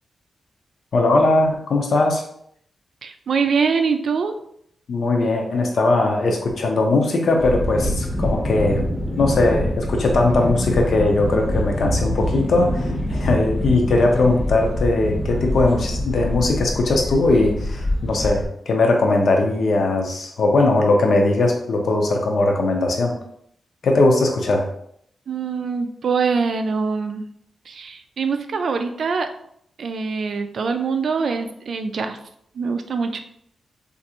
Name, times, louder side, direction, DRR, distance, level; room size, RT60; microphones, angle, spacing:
voice 1, 0.9-2.2 4.9-8.8 9.2-23.1 23.8-24.6, left 2 dB, 70° left, 2 dB, 0.6 m, -19 dB
voice 2, 3.0-4.4 25.3-27.2 27.7-29.3 29.8-32.2 32.5-33.2, right 5 dB, 70° right, 7 dB, 0.3 m, -23 dB
sound 1, 7.4-18.5, left 1 dB, 30° left, 0.7 m, -25 dB
3.2 x 2.5 x 2.9 m, 0.70 s
cardioid pair, 65°, 0 cm